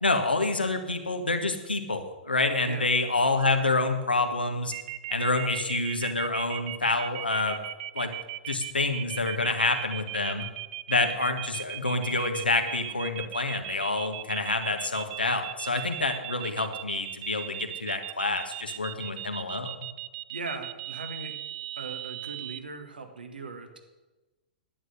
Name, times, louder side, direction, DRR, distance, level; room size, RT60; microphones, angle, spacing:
voice 1, 0.0-4.7 5.1-7.6 7.9-8.1 8.5-10.4 10.9-19.7, left 2 dB, 85° left, 5 dB, 1.6 m, -27 dB
sound 1, 4.7-22.6, right 16 dB, 45° right, 0.5 m, -37 dB
voice 2, 20.3-21.4 21.8-23.8, right 3 dB, 75° right, 5 dB, 1.8 m, -39 dB
11.0 x 9.4 x 6.5 m, 1.1 s
figure-of-eight pair, 105°, 5 cm